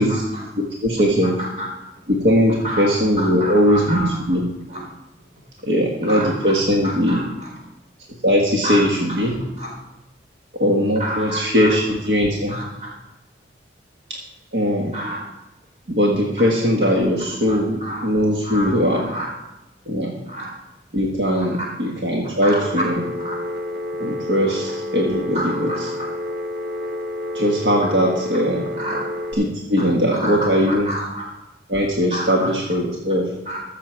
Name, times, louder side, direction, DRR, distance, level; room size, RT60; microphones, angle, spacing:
voice 1, 0.0-0.5 1.2-1.7 2.5-4.4 4.7-4.8 6.0-6.5 6.8-7.5 8.6-9.7 11.0-11.7 12.5-12.9 14.9-15.2 17.5-18.0 18.4-19.3 20.3-20.5 21.3-21.5 22.4-22.6 23.2-23.4 24.4-24.5 25.3-26.1 28.8-29.0 29.8-31.3 32.1-32.5 33.4-33.6, equal, 40° right, -4 dB, 4.4 m, -30 dB
voice 2, 0.6-1.4 2.1-4.4 5.6-7.2 8.2-9.4 10.6-12.6 14.5-14.9 15.9-19.0 19.9-20.1 20.9-23.1 24.0-25.9 27.3-28.7 29.3-30.9 31.7-33.3, equal, 80° right, -1 dB, 1.5 m, -20 dB
Telephone, 22.6-29.3, left 1 dB, 60° right, 1.3 m, -29 dB
14.0 x 7.1 x 4.6 m, 0.95 s
head